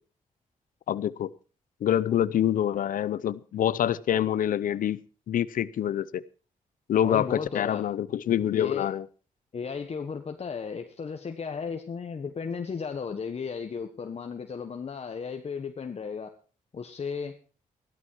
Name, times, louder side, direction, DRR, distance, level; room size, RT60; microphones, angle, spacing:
voice 1, 0.9-1.3 1.8-5.0 5.3-6.2 6.9-9.1, left 10 dB, 75° left, 0.6 m, -26 dB
voice 2, 7.0-7.9 8.6-8.9 9.5-16.3 16.7-17.3, left 5 dB, 45° left, 1.4 m, -35 dB
14.5 x 12.5 x 4.6 m
cardioid pair, 85°, 14 cm